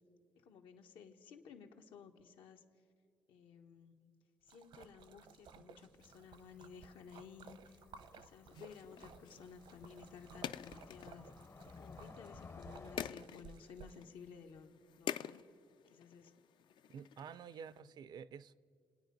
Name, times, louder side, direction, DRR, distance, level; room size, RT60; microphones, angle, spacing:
voice 1, 0.3-2.6 3.3-4.1 4.4-7.8 8.1-11.3 11.7-15.4 15.9-16.4 17.4-17.9, left 6 dB, 85° left, 1.3 m, -56 dB
Splash splatter, 4.5-14.0, right 6 dB, 75° right, 0.8 m, -58 dB
Cricket / Motor vehicle (road), 6.0-13.1, left 4 dB, 30° left, 0.6 m, -57 dB
sound 1, 8.5-17.8, left 9 dB, 65° left, 0.4 m, -49 dB
voice 2, 16.9-18.5, right 7 dB, 55° right, 0.4 m, -50 dB
28.5 x 9.5 x 5.3 m
cardioid pair, 120°, 9 cm